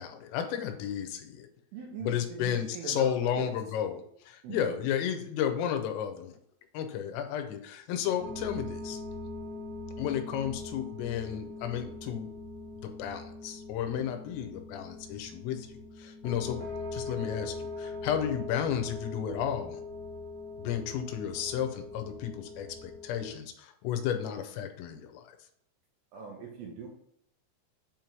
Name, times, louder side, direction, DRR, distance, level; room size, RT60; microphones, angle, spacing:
voice 1, 0.0-1.5 2.0-4.0 4.3-6.4 6.7-9.0 10.0-12.3 12.8-19.8 20.6-25.3, left 9 dB, 85° left, 6 dB, 3.4 m, -33 dB
voice 2, 1.7-3.5 4.4-4.8 26.1-26.9, right 5 dB, 80° right, -1 dB, 2.5 m, -41 dB
sound 1, 8.2-23.3, left 3 dB, 40° left, 1.3 m, -41 dB
7.6 x 3.0 x 5.2 m, 0.69 s
omnidirectional pair, 5.8 m